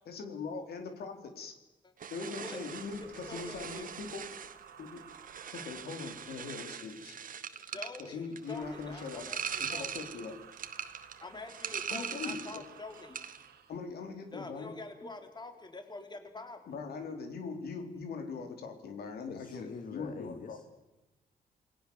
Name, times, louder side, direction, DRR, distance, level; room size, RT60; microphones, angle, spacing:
voice 1, 0.1-1.5 2.1-4.2 4.8-5.0 5.5-7.2 8.0-9.2 9.6-10.3 11.9-12.6 13.7-14.8 16.7-20.6, left 4 dB, 85° left, 5 dB, 4.2 m, -41 dB
sound 1, 2.0-12.7 13.0-13.5, right 7 dB, 60° right, 1.7 m, -41 dB
voice 2, 2.2-4.1 7.7-10.0 11.2-13.2 14.3-16.8, left 2 dB, 25° left, 6 dB, 3.8 m, -46 dB
sound 2, 2.4-7.0 8.4-13.8, right 8 dB, 90° right, 2.5 m, -54 dB
voice 3, 19.3-20.6, left 5 dB, 60° left, 6 dB, 2.6 m, -44 dB
28.5 x 21.0 x 7.3 m, 1.0 s
cardioid pair, 100°, 16 cm